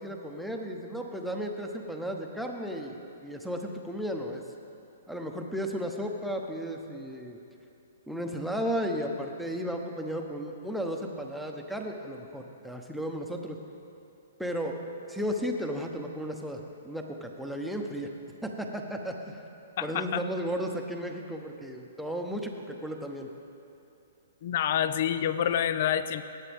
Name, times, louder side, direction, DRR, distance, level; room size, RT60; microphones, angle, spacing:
voice 1, 0.0-4.4 5.1-7.4 8.1-13.6 14.4-14.7 15.1-18.1 18.4-19.4 19.8-23.3, equal, ahead, 2 dB, 0.9 m, -34 dB
voice 2, 19.8-20.2 24.4-26.2, left 9 dB, 55° left, 13 dB, 0.4 m, -27 dB
19.0 x 8.3 x 3.6 m, 2.7 s
hypercardioid pair, 135°, 0 cm